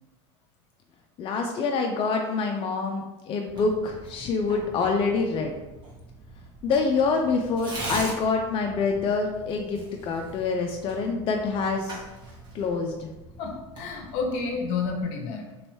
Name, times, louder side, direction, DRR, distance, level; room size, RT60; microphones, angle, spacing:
voice 1, 1.2-5.5 6.6-9.8 10.0-12.0 12.5-13.1, left 4 dB, 35° left, 2 dB, 0.4 m, -26 dB
Tearing, 3.5-15.0, right 1 dB, 30° right, 1.3 m, -42 dB
voice 2, 13.4-15.6, left 4 dB, 65° left, 3 dB, 0.8 m, -30 dB
3.0 x 3.0 x 3.0 m, 1.1 s
supercardioid pair, 105°, 15 cm